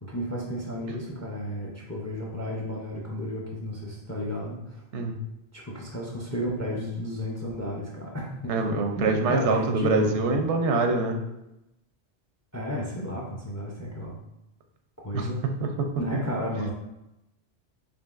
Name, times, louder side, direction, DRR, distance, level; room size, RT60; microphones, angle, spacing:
voice 1, 0.0-4.8 5.5-10.1 12.5-14.1 15.0-15.4 16.0-16.7, equal, 25° left, -3 dB, 0.4 m, -33 dB
voice 2, 8.5-11.2 15.1-15.3 15.8-15.9, right 3 dB, 90° right, 4 dB, 0.9 m, -24 dB
5.1 x 2.7 x 2.4 m, 0.90 s
omnidirectional pair, 1.1 m